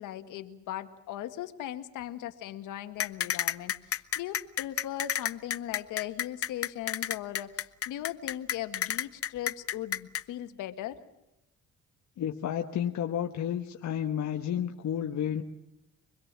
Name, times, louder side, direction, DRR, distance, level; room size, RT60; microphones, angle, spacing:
voice 1, 0.0-11.0, left 12 dB, 90° left, 9 dB, 1.8 m, -38 dB
sound 1, 3.0-10.2, left 10 dB, 50° left, 0.9 m, -30 dB
voice 2, 12.2-15.4, left 9 dB, 70° left, 3 dB, 1.5 m, -31 dB
25.0 x 21.0 x 7.5 m, 0.87 s
cardioid pair, 90°, 30 cm